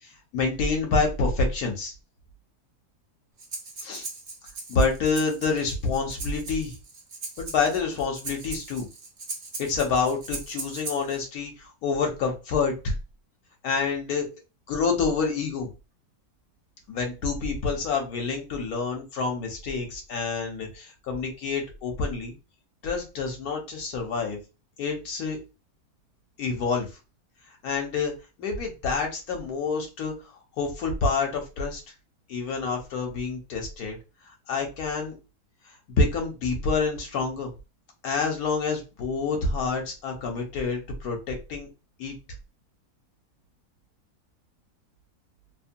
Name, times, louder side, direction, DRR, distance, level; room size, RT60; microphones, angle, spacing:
voice 1, 0.3-1.9 3.8-4.1 4.7-6.7 7.4-8.9 9.6-12.9 13.6-14.3 14.7-15.7 16.9-22.3 22.8-24.4 24.8-25.4 26.4-26.9 27.6-28.1 28.4-30.1 30.6-31.8 32.3-34.0 34.5-35.1 35.9-37.5 38.0-41.7 42.0-42.1, left 4 dB, 70° left, 2 dB, 1.2 m, -27 dB
Breathing, 3.4-11.2, right 3 dB, 55° right, 0.5 m, -39 dB
2.8 x 2.1 x 2.6 m, 0.28 s
omnidirectional pair, 1.7 m